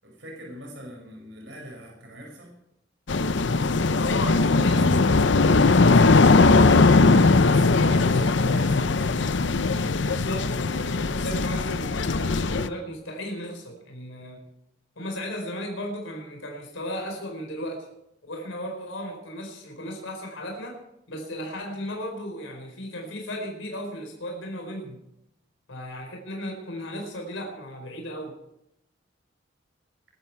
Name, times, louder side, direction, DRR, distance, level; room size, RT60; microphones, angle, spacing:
voice 1, 0.0-2.5 6.6-9.3, right 1 dB, 65° right, 0 dB, 6.0 m, -42 dB
sound 1, 3.1-12.7, left 3 dB, 65° left, 0.7 m, -20 dB
voice 2, 3.9-4.9 5.2-6.7 10.0-14.4 15.0-17.9 18.3-20.8 21.1-25.0 25.7-28.3, equal, 90° left, 1 dB, 4.5 m, -35 dB
21.5 x 13.0 x 4.7 m, 0.83 s
head